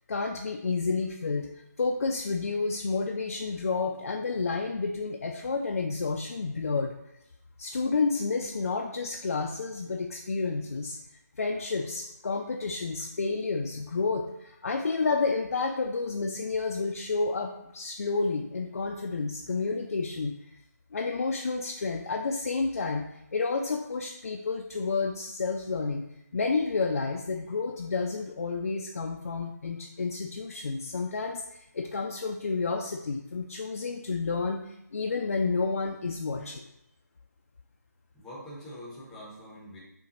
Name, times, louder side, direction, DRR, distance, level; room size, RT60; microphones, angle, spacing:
voice 1, 0.1-1.5 1.8-6.9 7.6-11.0 11.4-20.4 20.9-26.1 26.3-36.6, left 4 dB, 55° left, 2 dB, 0.4 m, -30 dB
voice 2, 38.1-39.8, equal, 5° left, -6 dB, 0.7 m, -44 dB
5.8 x 2.3 x 3.9 m, 0.83 s
figure-of-eight pair, 165°, 9 cm